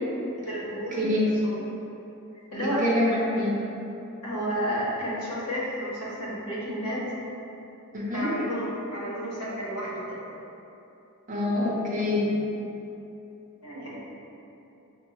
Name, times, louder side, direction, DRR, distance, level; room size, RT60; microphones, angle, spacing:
voice 1, 0.4-1.1 1.5-1.6 2.5-2.9 4.2-7.1 8.1-10.2 13.6-14.0, equal, 90° left, -6 dB, 1.0 m, -31 dB
voice 2, 1.0-1.3 2.8-3.5 7.9-8.3 11.3-12.3, left 1 dB, 35° right, -6 dB, 0.6 m, -25 dB
5.4 x 2.1 x 2.9 m, 2.9 s
head